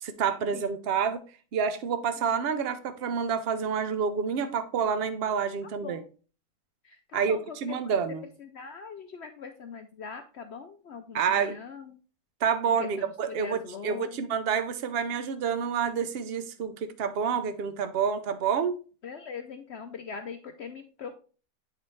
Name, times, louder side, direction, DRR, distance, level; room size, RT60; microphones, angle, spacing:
voice 1, 0.0-1.2 1.5-6.0 7.1-8.2 11.1-11.6 12.4-18.8, right 6 dB, 60° right, 11 dB, 0.6 m, -28 dB
voice 2, 6.8-7.6 7.8-7.9 8.4-12.0 12.7-14.3 19.0-21.2, left 6 dB, 65° left, 6 dB, 0.7 m, -41 dB
8.4 x 4.2 x 3.1 m, 0.37 s
omnidirectional pair, 1.7 m